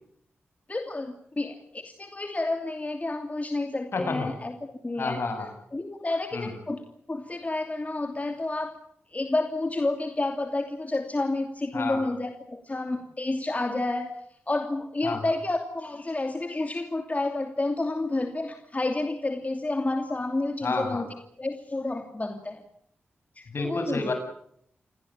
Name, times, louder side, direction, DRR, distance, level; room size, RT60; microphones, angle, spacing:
voice 1, 0.7-5.3 5.7-6.8 7.1-8.8 9.1-14.2 14.5-21.1 21.4-22.6 23.4-24.1, left 2 dB, 35° left, 5 dB, 2.8 m, -30 dB
voice 2, 3.9-4.3 5.0-5.5 6.3-6.5 11.7-12.1 15.0-15.2 20.6-21.0 23.5-24.1, left 3 dB, 65° left, 6 dB, 7.7 m, -30 dB
28.0 x 17.0 x 8.7 m, 0.69 s
cardioid pair, 45°, 5 cm